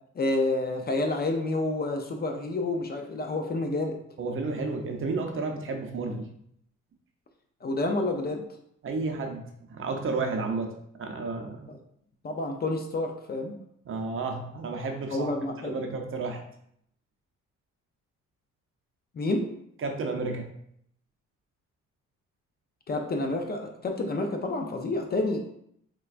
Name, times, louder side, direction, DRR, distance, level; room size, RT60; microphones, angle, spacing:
voice 1, 0.2-4.0 7.6-8.4 12.2-13.6 15.1-15.9 19.2-19.5 22.9-25.4, left 2 dB, 35° left, 4 dB, 0.4 m, -29 dB
voice 2, 4.2-6.3 8.8-11.7 13.9-15.3 15.6-16.4 19.8-20.5, right 3 dB, 45° right, 3 dB, 0.6 m, -32 dB
4.0 x 2.2 x 2.4 m, 0.71 s
cardioid pair, 90°, 30 cm